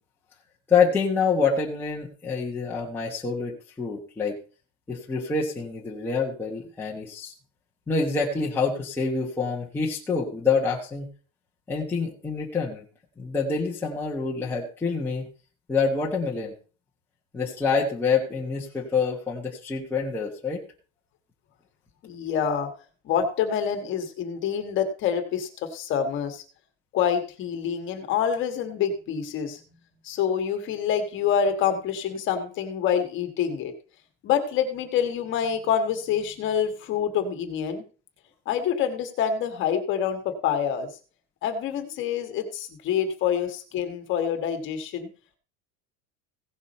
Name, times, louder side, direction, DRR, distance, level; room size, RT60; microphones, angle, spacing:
voice 1, 0.7-4.4 4.9-7.3 7.9-11.1 11.7-12.8 13.2-15.3 15.7-16.5 17.3-20.6, left 5 dB, 5° left, -4 dB, 1.1 m, -26 dB
voice 2, 22.0-22.7 23.0-26.4 26.9-29.6 30.0-33.7 34.2-37.8 38.4-40.9 41.4-45.1, left 8 dB, 35° left, 6 dB, 1.6 m, -26 dB
16.5 x 6.1 x 4.2 m, 0.38 s
cardioid pair, 175°, 37 cm